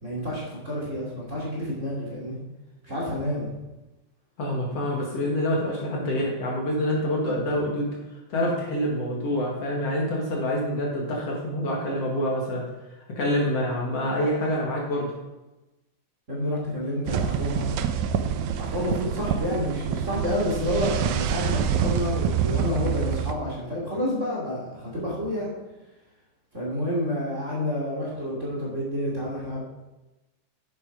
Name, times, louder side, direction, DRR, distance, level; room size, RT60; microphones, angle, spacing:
voice 1, 0.0-2.4 2.8-3.5 16.3-17.8 18.5-25.5 26.5-29.6, left 1 dB, 25° right, -5 dB, 2.9 m, -29 dB
voice 2, 4.4-7.9 8.3-12.6 13.1-15.1, left 1 dB, 55° left, -2 dB, 2.9 m, -26 dB
sound 1, 17.1-23.3, right 8 dB, 85° right, 2.2 m, -26 dB
9.9 x 8.4 x 4.9 m, 1.0 s
omnidirectional pair, 3.4 m